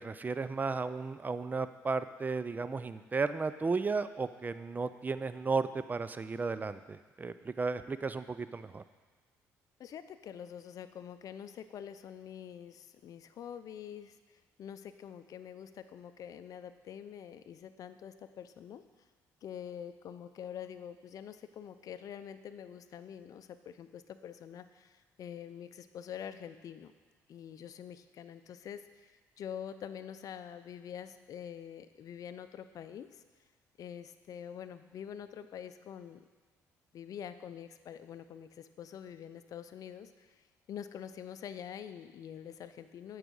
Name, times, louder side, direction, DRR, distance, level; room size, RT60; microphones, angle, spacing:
voice 1, 0.0-8.8, right 4 dB, 25° right, 13 dB, 0.5 m, -34 dB
voice 2, 9.8-18.8 19.4-26.9 27.3-33.2 33.8-36.2 36.9-43.2, left 9 dB, 60° left, 11 dB, 0.5 m, -46 dB
8.9 x 4.8 x 6.3 m, 1.4 s
supercardioid pair, 70°, 7 cm